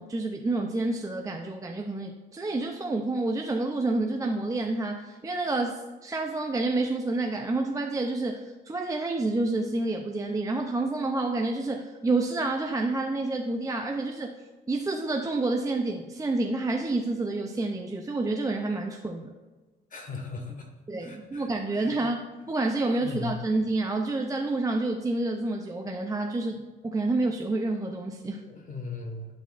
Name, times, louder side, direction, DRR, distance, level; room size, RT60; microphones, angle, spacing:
voice 1, 0.0-14.3 14.7-19.3 20.9-22.2 22.5-28.4, right 2 dB, 15° right, 3 dB, 0.5 m, -29 dB
voice 2, 19.9-20.7 21.0-21.9 23.0-23.4 28.4-29.3, left 4 dB, 40° left, 2 dB, 1.6 m, -38 dB
11.0 x 4.1 x 2.5 m, 1.3 s
cardioid pair, 90°, 20 cm